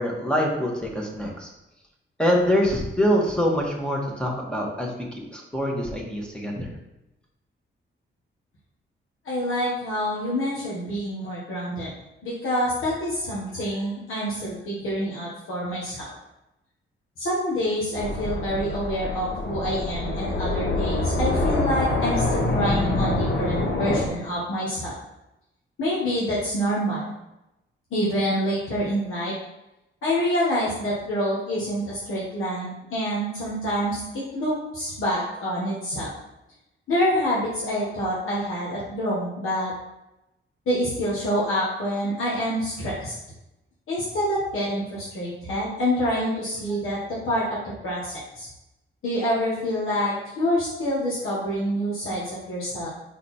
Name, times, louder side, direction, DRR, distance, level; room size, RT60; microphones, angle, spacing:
voice 1, 0.0-1.5 2.2-4.9 5.3-6.7, equal, 5° left, -1 dB, 1.4 m, -24 dB
voice 2, 9.2-11.9 12.2-16.1 17.2-24.9 25.8-27.1 27.9-29.3 30.0-36.1 36.9-39.7 40.6-43.1 43.9-47.0 47.2-47.6 47.8-48.5 49.0-52.9, equal, 85° left, -7 dB, 1.7 m, -27 dB
sound 1, 18.0-24.1, left 2 dB, 60° left, 1.2 m, -25 dB
5.5 x 4.1 x 4.4 m, 0.92 s
wide cardioid pair, 120°, 21 cm